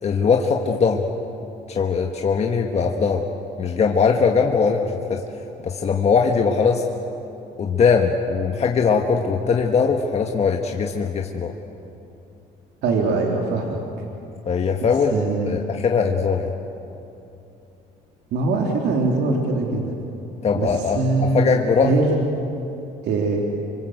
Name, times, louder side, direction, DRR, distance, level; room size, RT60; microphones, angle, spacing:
voice 1, 0.0-1.1 1.7-3.2 3.6-5.2 5.6-6.8 7.6-11.5 14.4-16.5 20.4-22.0, left 5 dB, 40° left, 2 dB, 1.7 m, -20 dB
voice 2, 12.8-13.8 14.8-15.6 18.3-19.9 20.5-20.7 21.0-21.5 21.8-22.1 23.1-23.4, right 3 dB, 75° right, 0 dB, 3.5 m, -22 dB
27.0 x 25.0 x 7.9 m, 2.9 s
cardioid pair, 110°, 17 cm